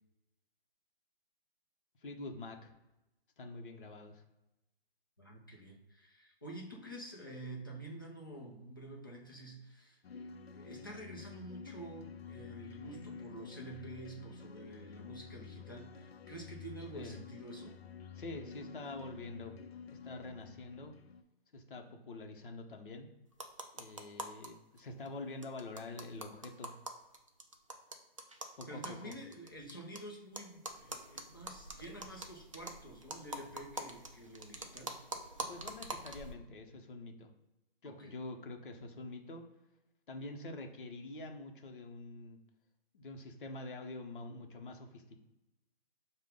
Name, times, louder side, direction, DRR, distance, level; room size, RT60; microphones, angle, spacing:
voice 1, 2.0-2.7 3.4-4.2 16.9-17.1 18.2-19.6 19.9-20.9 21.5-23.1 23.7-26.7 28.6-29.1 35.5-37.3 37.8-39.4 40.1-42.4 42.9-45.2, left 2 dB, 60° left, 3 dB, 0.8 m, -46 dB
voice 2, 5.2-17.8 28.7-34.9 37.8-38.1, right 1 dB, 20° left, -2 dB, 0.5 m, -49 dB
sound 1, 10.0-21.2, left 6 dB, 85° left, 0.6 m, -50 dB
sound 2, 23.3-24.5 24.8-24.9 25.1-25.2 25.4-30.0 30.4-36.3, right 2 dB, 35° right, 0.4 m, -45 dB
4.9 x 2.2 x 3.7 m, 0.98 s
hypercardioid pair, 170°, 30 cm